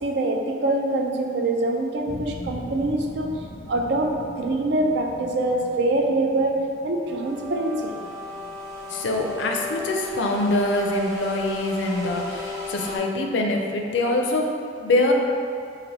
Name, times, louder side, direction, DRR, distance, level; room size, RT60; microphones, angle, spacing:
voice 1, 0.0-7.9, right 2 dB, 65° right, 2 dB, 0.4 m, -24 dB
sound 1, 2.1-10.8 11.2-11.7, left 2 dB, 25° left, 0.3 m, -42 dB
sound 2, 7.1-13.0, left 3 dB, 10° right, 0.8 m, -34 dB
voice 2, 8.9-15.1, left 2 dB, 85° left, 1 dB, 0.4 m, -24 dB
3.3 x 2.5 x 4.1 m, 2.3 s
head